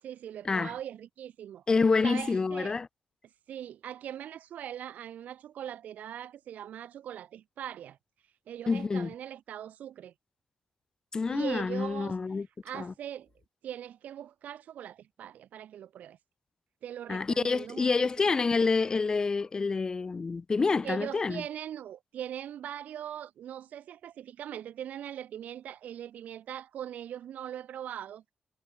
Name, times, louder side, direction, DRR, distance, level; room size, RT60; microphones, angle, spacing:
voice 1, 0.0-1.6 2.0-2.8 3.5-8.0 8.5-10.1 11.3-12.1 12.6-13.3 13.6-16.2 16.8-18.3 20.8-28.2, right 10 dB, 85° right, 7.7 m, -41 dB
voice 2, 1.7-2.9 8.7-9.1 11.1-12.5 12.7-12.9 17.1-21.4, left 4 dB, 30° left, 0.4 m, -27 dB
cardioid pair, 125°, 3 cm